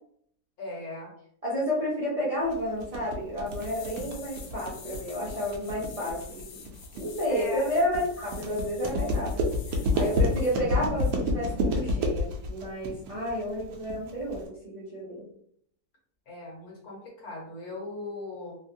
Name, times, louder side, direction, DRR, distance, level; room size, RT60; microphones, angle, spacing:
voice 1, 0.6-1.1 7.3-7.7 16.3-18.6, left 2 dB, 60° left, -4 dB, 1.6 m, -38 dB
voice 2, 1.4-9.5 9.9-15.3, equal, 50° right, -7 dB, 0.4 m, -31 dB
sound 1, 2.5-14.5, left 1 dB, 70° right, 1.0 m, -29 dB
sound 2, 3.5-10.6 11.0-11.1, left 6 dB, 85° left, 1.2 m, -48 dB
3.2 x 2.2 x 2.6 m, 0.66 s
omnidirectional pair, 1.8 m